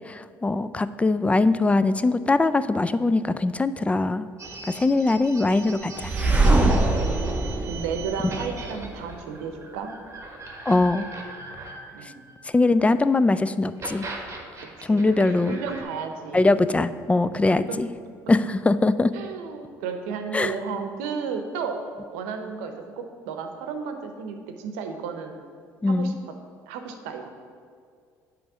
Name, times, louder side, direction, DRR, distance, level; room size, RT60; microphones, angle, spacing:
voice 1, 0.1-4.3 4.7-6.1 10.7-11.1 12.5-14.1 14.8-15.6 16.3-17.9 18.3-19.1 20.3-20.5 25.8-26.2, left 2 dB, 15° left, 14 dB, 0.3 m, -21 dB
sound 1, 4.4-12.9 13.6-15.8, right 3 dB, 35° right, 1.3 m, -40 dB
sound 2, 6.0-8.9, right 2 dB, 15° right, 1.0 m, -22 dB
voice 2, 6.9-9.9 11.9-12.3 14.9-16.5 17.7-17.8 19.1-21.8 22.1-25.4 25.9-26.1 26.7-27.3, right 5 dB, 85° right, 6 dB, 0.7 m, -33 dB
8.5 x 3.2 x 6.1 m, 2.2 s
hypercardioid pair, 65°, 8 cm